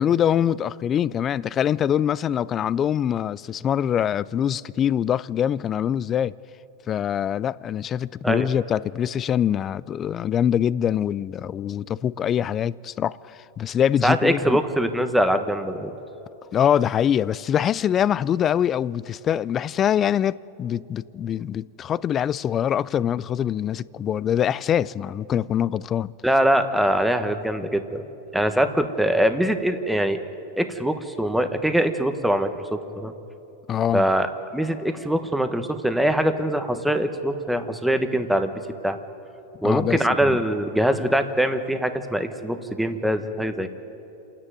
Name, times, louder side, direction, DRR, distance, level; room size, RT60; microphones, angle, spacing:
voice 1, 0.0-6.3 6.9-14.6 16.5-26.1 33.7-34.1 39.6-40.4, left 9 dB, 30° left, 0.4 m, -24 dB
voice 2, 14.0-15.9 26.2-28.0 28.3-30.2 30.6-33.1 33.9-34.3 34.5-38.5 38.8-39.0 39.6-43.7, right 1 dB, ahead, 1.2 m, -23 dB
27.5 x 10.0 x 9.3 m
hypercardioid pair, 125°, 0 cm